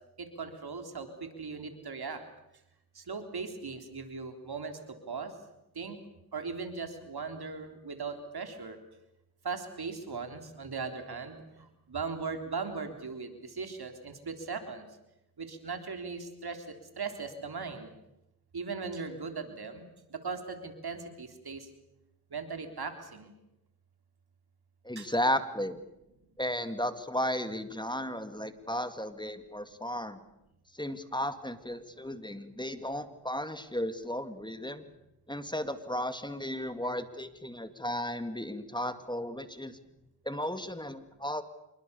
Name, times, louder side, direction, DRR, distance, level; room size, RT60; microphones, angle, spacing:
voice 1, 0.2-2.2 3.0-5.3 5.8-6.0 6.3-8.8 9.4-14.9 15.4-17.9 18.5-19.9 20.1-21.7 22.3-23.3 25.0-25.1, right 4 dB, 70° right, 6 dB, 3.7 m, -39 dB
voice 2, 24.8-25.8 26.4-30.2 30.7-34.9 35.3-39.8 40.3-41.4, left 1 dB, 10° left, 10 dB, 2.3 m, -34 dB
26.5 x 22.5 x 7.0 m, 0.90 s
cardioid pair, 40°, 39 cm